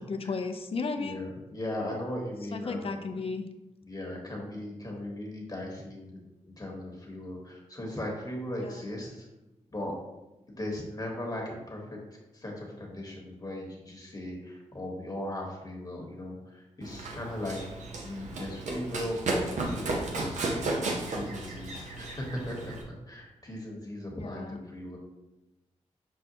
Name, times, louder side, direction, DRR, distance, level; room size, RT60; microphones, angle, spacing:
voice 1, 0.1-1.3 2.5-3.4 8.6-8.8 24.2-24.6, left 4 dB, 50° left, 7 dB, 0.4 m, -34 dB
voice 2, 1.0-2.9 3.8-6.2 6.5-9.2 9.7-9.9 10.6-12.0 12.3-19.5 19.7-22.7 23.1-25.0, left 1 dB, 30° left, -1 dB, 1.1 m, -38 dB
Run, 16.8-22.8, right 2 dB, 85° right, 0.6 m, -34 dB
6.3 x 2.1 x 2.7 m, 0.99 s
cardioid pair, 55°, 12 cm